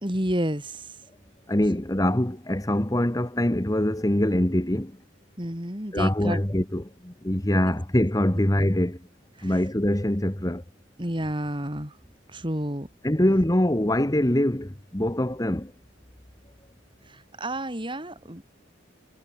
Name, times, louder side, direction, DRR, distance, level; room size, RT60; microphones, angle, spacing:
voice 1, 0.0-0.9 5.4-6.4 7.6-7.8 9.4-9.6 11.0-12.0 12.3-12.9 17.1-18.4, right 1 dB, 25° right, 4.7 m, -30 dB
voice 2, 1.5-4.9 5.9-9.0 9.4-10.6 13.0-15.7, left 1 dB, 20° left, 1.3 m, -24 dB
head